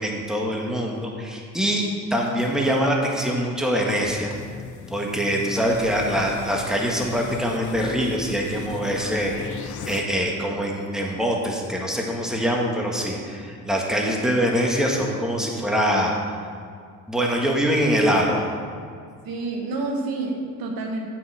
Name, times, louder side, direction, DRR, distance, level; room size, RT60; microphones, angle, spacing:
voice 1, 0.0-4.3 4.9-16.1 17.1-18.4, equal, ahead, -1 dB, 1.6 m, -24 dB
sound 1, 3.8-10.0, left 7 dB, 55° left, 0.7 m, -38 dB
voice 2, 19.2-21.1, right 3 dB, 75° right, 1 dB, 1.2 m, -28 dB
7.7 x 5.7 x 5.6 m, 2.1 s
supercardioid pair, 65°, 35 cm